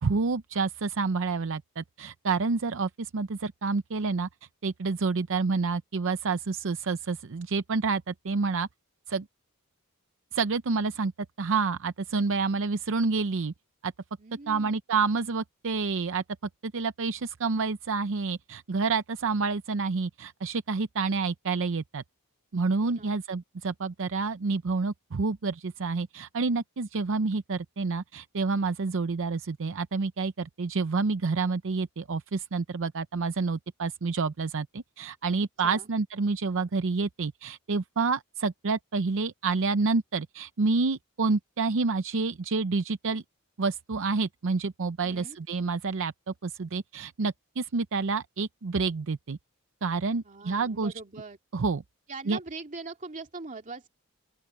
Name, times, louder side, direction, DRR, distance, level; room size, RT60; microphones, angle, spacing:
voice 1, 0.0-4.3 4.6-8.7 9.1-9.3 10.3-11.1 11.4-13.5 13.8-13.9 14.5-16.2 16.6-22.0 22.5-43.2 43.6-49.4 49.8-50.9 51.5-51.8 52.3-52.4, right 4 dB, 60° right, 0.6 m, -28 dB
voice 2, 14.2-14.8 22.8-23.1 35.6-35.9 45.0-45.4 50.2-51.4 52.1-53.9, right 3 dB, 35° right, 2.5 m, -42 dB
open air
head